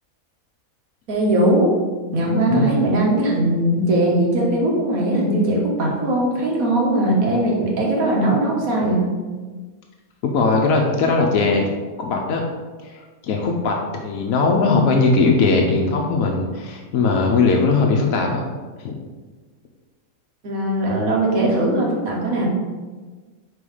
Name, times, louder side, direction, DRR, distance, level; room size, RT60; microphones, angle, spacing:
voice 1, 1.1-1.7 2.1-9.1 20.4-22.5, right 1 dB, 80° right, -2 dB, 1.7 m, -19 dB
voice 2, 10.2-11.7 12.0-12.4 12.8-18.4 18.8-18.9, left 3 dB, 80° left, 1 dB, 1.1 m, -19 dB
5.4 x 3.8 x 4.9 m, 1.4 s
omnidirectional pair, 1.4 m